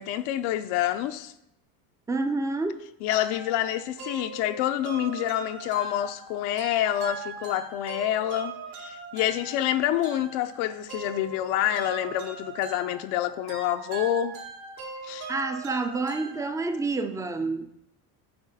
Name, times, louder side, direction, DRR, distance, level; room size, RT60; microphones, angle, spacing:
voice 1, 0.0-1.3 3.0-14.4 15.0-15.3, left 12 dB, 80° left, 0.6 m, -27 dB
voice 2, 2.1-2.8 15.3-17.7, right 3 dB, 10° right, 0.3 m, -28 dB
sound 1, 3.1-16.9, right 4 dB, 80° right, 2.6 m, -41 dB
8.8 x 4.3 x 4.1 m
cardioid pair, 135°, 40 cm